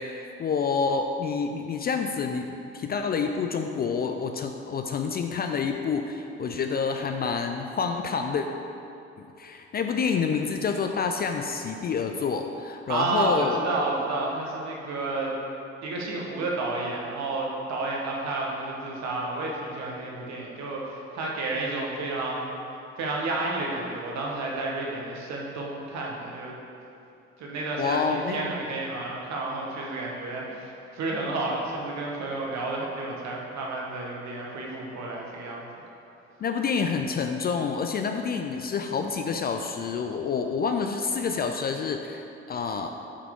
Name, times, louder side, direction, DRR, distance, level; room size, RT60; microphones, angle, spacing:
voice 1, 0.0-8.5 9.4-13.6 27.8-28.4 36.4-42.9, left 5 dB, 30° left, 5 dB, 0.4 m, -28 dB
voice 2, 12.9-15.4 15.8-22.5 23.0-26.5 27.4-35.6, right 2 dB, 55° right, -2 dB, 1.3 m, -31 dB
7.0 x 4.7 x 3.6 m, 2.8 s
figure-of-eight pair, 50°, 33 cm